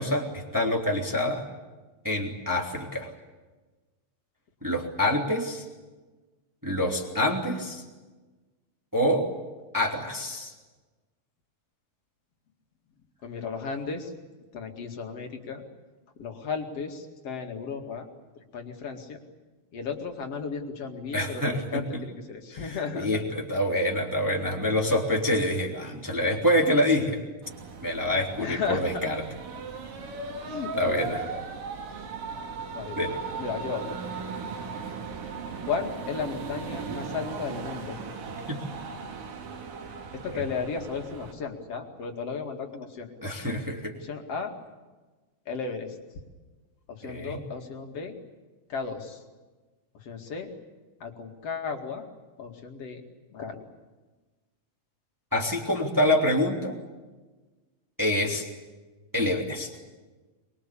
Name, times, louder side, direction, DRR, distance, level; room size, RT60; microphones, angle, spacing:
voice 1, 0.0-1.4 2.0-3.1 4.6-5.6 6.6-7.8 8.9-9.3 9.7-10.5 21.1-22.0 22.5-27.2 27.8-29.2 30.7-31.2 33.0-33.2 38.5-38.6 40.3-40.4 43.2-43.9 47.0-47.4 55.3-56.8 58.0-58.5 59.1-59.7, left 1 dB, 5° right, 0 dB, 2.6 m, -26 dB
voice 2, 13.2-14.1 14.5-15.6 16.2-18.1 18.5-19.2 19.7-23.2 28.4-29.1 29.5-29.6 30.4-31.4 32.7-33.0 33.4-34.0 35.6-38.0 40.1-43.3 43.9-44.5 45.5-46.0 46.9-48.1 48.7-49.2 50.0-50.5 51.0-52.1 52.4-53.0 53.3-53.7, left 5 dB, 50° left, 4 dB, 3.1 m, -34 dB
sound 1, 27.4-41.3, right 5 dB, 75° right, 4.2 m, -37 dB
24.0 x 23.0 x 8.6 m, 1.3 s
omnidirectional pair, 3.9 m